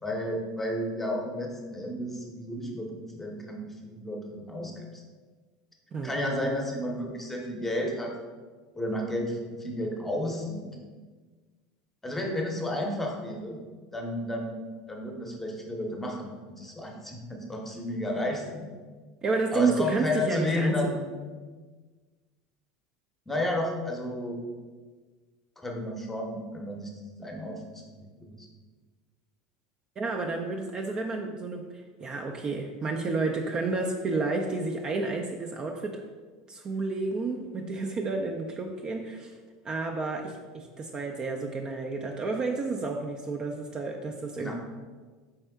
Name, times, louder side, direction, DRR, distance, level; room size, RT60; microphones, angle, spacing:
voice 1, 0.0-5.0 6.0-8.2 8.7-10.8 12.0-13.6 13.9-18.7 19.5-21.1 23.3-24.4 25.6-28.5 44.4-44.5, left 1 dB, 10° left, 1 dB, 0.8 m, -32 dB
voice 2, 19.2-21.0 30.0-31.6 32.0-36.0 36.5-39.3 39.6-44.5, right 3 dB, 30° right, 3 dB, 0.4 m, -30 dB
4.4 x 3.4 x 3.4 m, 1.4 s
supercardioid pair, 105°, 2 cm